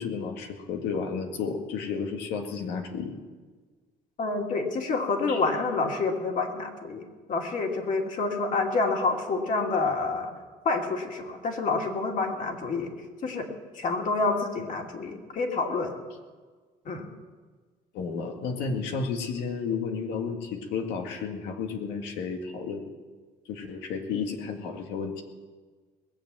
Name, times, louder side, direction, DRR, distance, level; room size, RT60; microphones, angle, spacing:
voice 1, 0.0-3.2 5.3-5.4 17.9-22.9 23.5-25.2, left 5 dB, 90° left, 4 dB, 2.0 m, -32 dB
voice 2, 4.2-10.3 10.6-12.9 13.2-13.5 13.7-15.9 16.8-17.1, left 3 dB, 50° left, 1 dB, 2.6 m, -28 dB
20.0 x 7.8 x 7.5 m, 1.4 s
cardioid pair, 110°, 17 cm